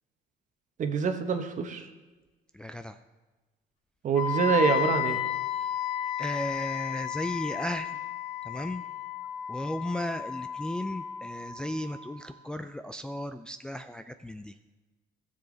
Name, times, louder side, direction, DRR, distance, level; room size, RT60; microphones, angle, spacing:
voice 1, 0.8-1.9 4.0-5.2, right 5 dB, 45° right, 6 dB, 1.1 m, -26 dB
voice 2, 2.6-2.9 6.2-7.9 8.5-8.8 9.5-14.5, left 1 dB, 5° left, 8 dB, 0.3 m, -35 dB
Wind instrument woodwind instrument, 4.1-12.1, left 8 dB, 85° left, 2.8 m, -33 dB
15.0 x 7.0 x 3.9 m, 1.2 s
cardioid pair, 110°, 17 cm